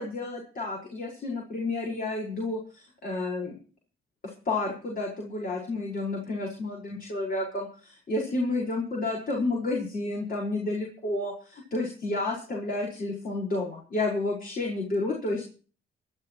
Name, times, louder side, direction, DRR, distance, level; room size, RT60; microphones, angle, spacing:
voice 1, 0.0-3.6 4.2-15.4, left 2 dB, 45° left, -1 dB, 5.2 m, -31 dB
23.0 x 12.5 x 3.1 m, 0.39 s
cardioid pair, 90°, 20 cm